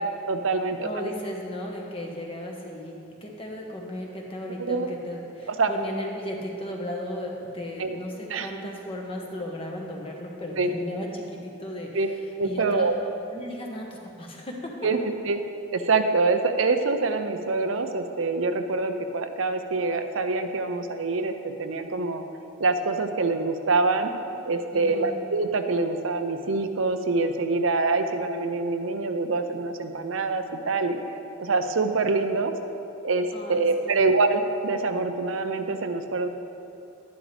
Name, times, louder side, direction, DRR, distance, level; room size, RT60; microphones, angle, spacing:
voice 1, 0.3-1.1 4.5-4.9 5.5-5.7 7.8-8.0 8.3-8.5 10.6-10.7 11.9-12.1 12.4-12.9 14.8-15.0 15.3-15.4 15.7-22.2 22.6-24.1 24.5-31.0 31.4-32.5 33.0-36.3, right 3 dB, 90° right, 7 dB, 0.7 m, -25 dB
voice 2, 0.8-3.0 3.2-11.9 12.4-12.9 13.3-14.7 24.7-25.1 33.3-34.0, left 1 dB, 30° left, -1 dB, 1.3 m, -35 dB
11.5 x 11.0 x 3.5 m, 2.7 s
head